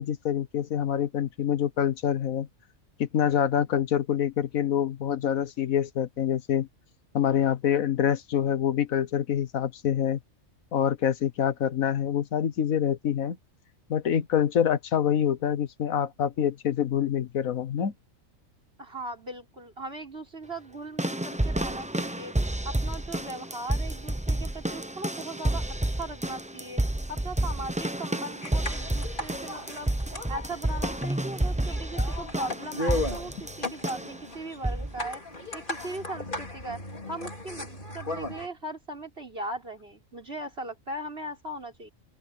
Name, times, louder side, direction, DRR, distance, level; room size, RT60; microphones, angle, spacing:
voice 1, 0.0-2.5 3.0-6.7 7.1-10.2 10.7-13.4 13.9-17.9, left 9 dB, 85° left, 1.5 m, -26 dB
voice 2, 18.8-22.3 22.6-26.8 27.1-29.9 30.3-35.2 35.5-36.8 37.1-41.9, right 1 dB, 45° right, 6.1 m, -38 dB
sound 1, 21.0-34.2 34.6-35.0 35.8-35.9, right 1 dB, 10° right, 0.5 m, -30 dB
sound 2, 28.4-38.5, left 2 dB, 35° left, 3.7 m, -36 dB
open air
omnidirectional pair, 1.4 m